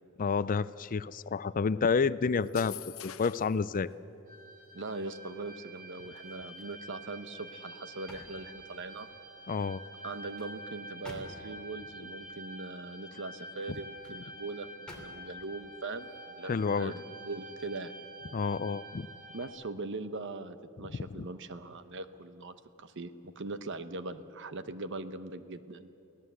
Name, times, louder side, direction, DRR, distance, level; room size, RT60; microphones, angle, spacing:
voice 1, 0.2-2.8 3.0-3.9 9.5-9.8 16.4-16.9 18.3-19.1 21.2-21.3, left 5 dB, 40° left, 17 dB, 0.4 m, -29 dB
sound 1, 2.4-3.6, left 12 dB, 75° left, 0.9 m, -45 dB
sound 2, 4.3-19.5, right 1 dB, 40° right, 3.3 m, -48 dB
voice 2, 4.7-9.1 10.0-17.9 19.3-25.9, right 3 dB, 60° right, 11 dB, 1.0 m, -41 dB
sound 3, 6.1-6.8 7.2-9.2 9.9-11.7 13.5-14.2 14.9-15.5 16.0-16.2, equal, 5° left, 2.9 m, -52 dB
24.0 x 16.5 x 8.1 m, 2.8 s
head